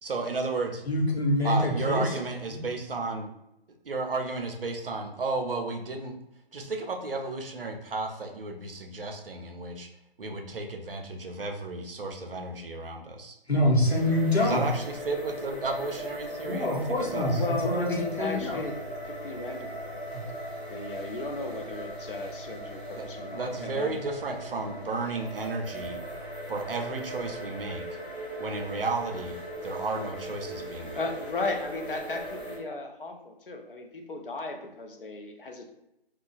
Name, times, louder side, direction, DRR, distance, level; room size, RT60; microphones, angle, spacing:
voice 1, 0.0-0.8 1.4-3.3 3.8-6.2 6.5-9.9 10.2-13.4 14.4-16.8 17.1-17.4 22.9-23.1 23.3-26.0 26.5-27.9 28.4-29.4 29.6-31.0, right 3 dB, 65° right, 4 dB, 0.5 m, -33 dB
voice 2, 0.9-2.1 13.5-14.7 16.4-18.6, left 1 dB, 90° left, -2 dB, 1.0 m, -25 dB
sound 1, 13.8-32.6, right 1 dB, 25° left, 0.8 m, -39 dB
Organ, 17.2-27.5, equal, 20° right, 0.7 m, -47 dB
voice 3, 17.3-18.7 19.0-19.7 20.7-23.9 30.9-35.7, left 3 dB, 60° left, 4 dB, 0.6 m, -35 dB
2.9 x 2.3 x 2.3 m, 0.87 s
figure-of-eight pair, 145°, 31 cm